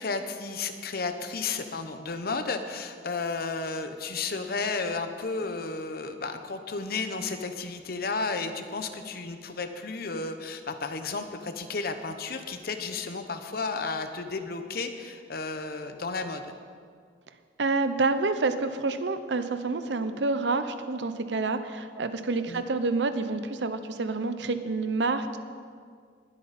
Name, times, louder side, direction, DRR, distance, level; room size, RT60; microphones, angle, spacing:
voice 1, 0.0-16.6 22.5-22.6, left 4 dB, 55° left, 7 dB, 0.9 m, -33 dB
voice 2, 17.6-25.4, right 3 dB, 75° right, 10 dB, 0.7 m, -28 dB
20.5 x 8.4 x 4.2 m, 2.1 s
head